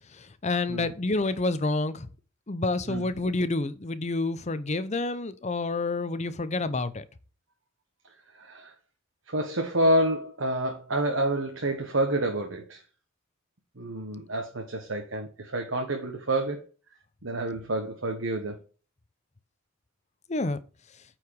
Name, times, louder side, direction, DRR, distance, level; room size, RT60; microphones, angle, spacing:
voice 1, 0.1-2.1 2.5-7.0 20.3-20.6, left 2 dB, 35° left, 0.7 m, -28 dB
voice 2, 8.3-8.7 9.3-12.8 13.8-16.6 17.2-18.6, right 1 dB, 65° right, 1.3 m, -28 dB
8.8 x 4.8 x 4.7 m
head